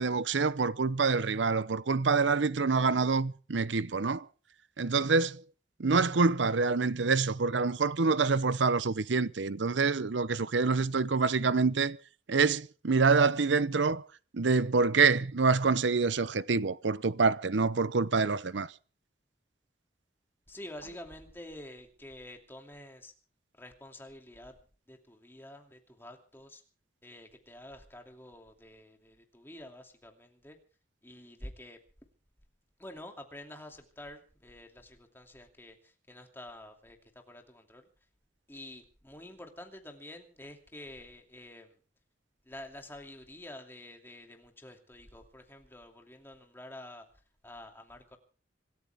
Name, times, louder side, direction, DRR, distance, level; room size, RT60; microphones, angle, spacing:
voice 1, 0.0-4.3 4.8-5.4 5.8-12.0 12.3-14.0 14.3-18.7, right 4 dB, 80° right, 0.7 m, -26 dB
voice 2, 20.5-23.1 23.5-24.6 24.9-26.6 27.0-30.6 31.0-31.8 32.8-37.9 38.5-41.7 42.4-47.1 47.4-48.2, left 1 dB, 10° left, 2.6 m, -48 dB
26.0 x 14.0 x 3.5 m
head